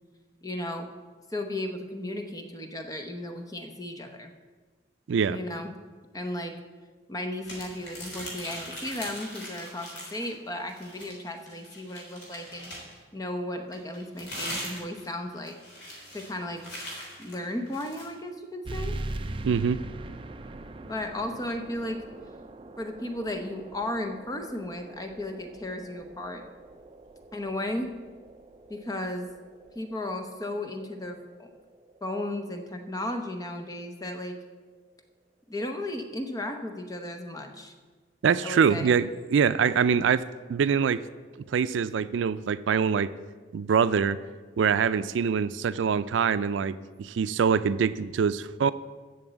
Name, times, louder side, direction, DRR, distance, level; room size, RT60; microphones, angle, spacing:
voice 1, 0.4-0.9 1.3-4.3 5.3-5.7 6.1-6.5 7.1-12.7 13.1-15.6 16.1-16.6 16.9-19.0 20.9-22.0 22.8-26.4 27.3-27.9 28.7-29.3 29.7-31.5 32.0-34.4 35.5-37.7 38.4-38.9, left 1 dB, 20° left, 5 dB, 0.8 m, -35 dB
voice 2, 5.1-5.4 19.4-19.8 38.2-40.2 40.5-41.0 41.5-43.1 43.5-44.2 44.6-48.7, right 6 dB, 90° right, 15 dB, 0.4 m, -24 dB
sound 1, 7.4-10.3 10.6-13.0 13.7-18.1, equal, 75° left, 3.5 m, -40 dB
sound 2, 18.6-33.7, right 2 dB, 30° right, 0.4 m, -42 dB
7.2 x 6.9 x 8.0 m, 1.4 s
head